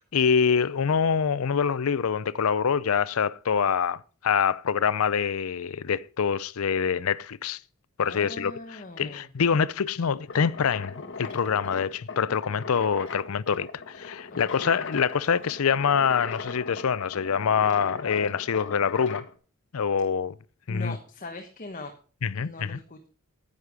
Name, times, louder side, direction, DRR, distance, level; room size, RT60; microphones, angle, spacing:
voice 1, 0.1-7.6 8.0-19.2 19.7-20.4 20.7-21.0 22.2-22.8, left 6 dB, 85° left, 0.5 m, -25 dB
voice 2, 8.0-9.3 14.3-14.8 20.7-21.9 22.3-23.1, left 2 dB, 40° left, 1.2 m, -41 dB
sound 1, 10.3-19.3, left 4 dB, 60° left, 1.4 m, -39 dB
10.5 x 9.7 x 4.9 m
head